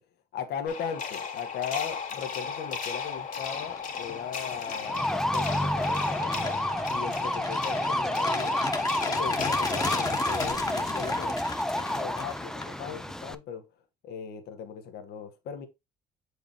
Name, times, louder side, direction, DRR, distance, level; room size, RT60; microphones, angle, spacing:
voice 1, 0.3-6.6 6.9-8.5 9.0-11.4 11.7-13.6 14.0-15.7, left 7 dB, 75° left, 1.4 m, -38 dB
sound 1, 0.7-10.5, left 6 dB, 50° left, 1.8 m, -36 dB
sound 2, 2.4-2.8 3.2-13.3, left 3 dB, 20° left, 1.3 m, -37 dB
sound 3, 4.8-13.3, left 1 dB, 5° left, 0.5 m, -29 dB
6.8 x 4.9 x 3.0 m
cardioid pair, 110°, 17 cm